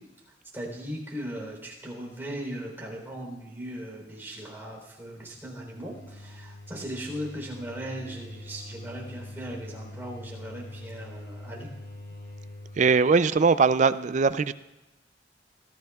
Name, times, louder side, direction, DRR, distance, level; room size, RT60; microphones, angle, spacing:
voice 1, 0.5-11.7, equal, 15° right, -2 dB, 3.7 m, -38 dB
sound 1, 5.2-12.9, left 1 dB, 60° left, 3.0 m, -44 dB
voice 2, 12.8-14.5, right 4 dB, 45° right, 14 dB, 0.4 m, -21 dB
22.0 x 14.5 x 2.4 m, 1.0 s
head